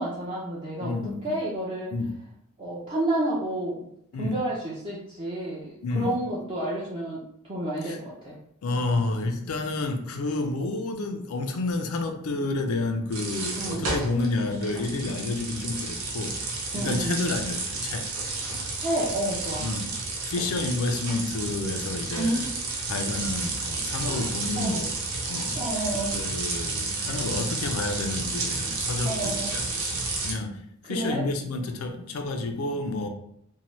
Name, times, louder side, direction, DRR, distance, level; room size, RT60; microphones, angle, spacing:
voice 1, 0.0-0.9 1.2-1.9 2.6-3.9 4.2-8.4 13.5-13.8 16.7-17.2 18.7-19.6 22.2-22.5 24.1-24.3 24.5-24.8 25.6-26.2 29.0-29.6 30.9-31.2, right 1 dB, 25° right, -7 dB, 0.4 m, -30 dB
voice 2, 0.8-1.4 1.9-2.1 4.1-4.4 5.8-6.2 7.8-8.0 8.6-16.4 16.7-18.1 18.4-18.6 19.6-19.9 20.2-22.5 22.9-25.0 25.2-25.7 26.1-33.1, left 2 dB, 85° left, 5 dB, 0.4 m, -30 dB
sound 1, 13.1-30.3, right 3 dB, 85° right, 0.7 m, -31 dB
2.7 x 2.1 x 3.0 m, 0.72 s
head